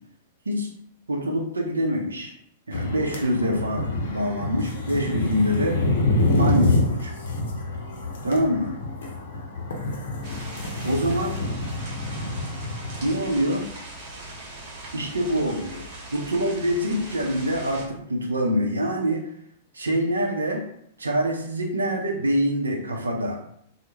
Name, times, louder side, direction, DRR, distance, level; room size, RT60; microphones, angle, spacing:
voice 1, 1.1-2.3 2.7-5.8 6.4-7.1 8.2-8.7 10.8-11.4 13.0-13.7 14.9-15.8 16.1-19.3 19.7-20.6 21.0-23.4, equal, 80° right, 1 dB, 0.5 m, -25 dB
sound 1, 2.7-13.1, left 2 dB, 65° left, 0.5 m, -27 dB
sound 2, 10.2-17.8, right 2 dB, 50° right, 0.7 m, -40 dB
2.2 x 2.0 x 3.0 m, 0.71 s
figure-of-eight pair, 105°, 0 cm